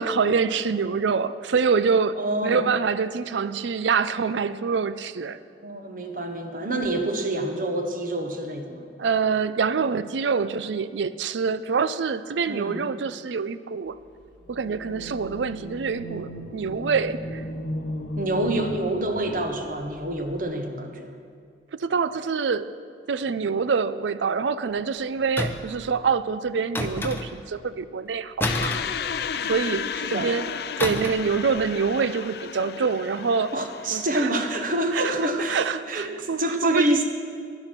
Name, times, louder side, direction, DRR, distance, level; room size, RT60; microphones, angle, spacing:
voice 1, 0.0-2.2 2.4-5.4 9.0-14.0 14.5-17.4 21.7-22.7 23.1-28.8 29.5-30.5 30.8-33.5 33.9-34.3 34.9-35.1 35.5-37.0, right 5 dB, 80° right, 15 dB, 0.5 m, -25 dB
voice 2, 2.2-2.6 5.6-8.9 12.5-12.8 18.2-21.1 29.3-29.5 29.9-30.3 33.5-35.6 35.9-37.0, right 1 dB, 45° right, 5 dB, 1.1 m, -27 dB
sound 1, 14.4-20.4, left 1 dB, 75° left, 1.0 m, -36 dB
sound 2, 25.4-25.8 26.7-27.5 28.4-29.6 30.8-31.3 31.6-31.8, left 1 dB, 10° left, 0.6 m, -29 dB
sound 3, 28.4-35.5, left 7 dB, 60° left, 0.4 m, -34 dB
10.5 x 10.5 x 6.0 m, 2.3 s
head